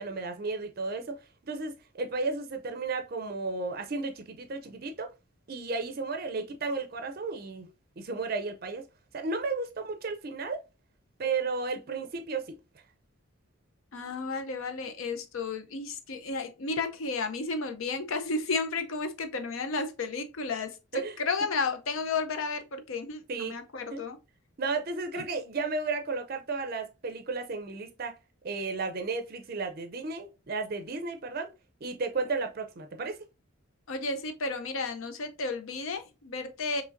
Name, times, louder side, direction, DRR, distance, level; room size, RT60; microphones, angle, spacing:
voice 1, 0.0-5.1 5.5-7.7 8.0-8.9 9.1-10.6 11.2-12.5 20.9-21.1 23.3-23.6 23.9-24.0 24.6-28.2 28.4-31.5 31.8-33.2, right 3 dB, 45° right, 0.5 m, -33 dB
voice 2, 13.9-24.2 25.1-25.2 33.9-36.8, left 3 dB, 70° left, 0.6 m, -33 dB
5.0 x 3.1 x 2.5 m
head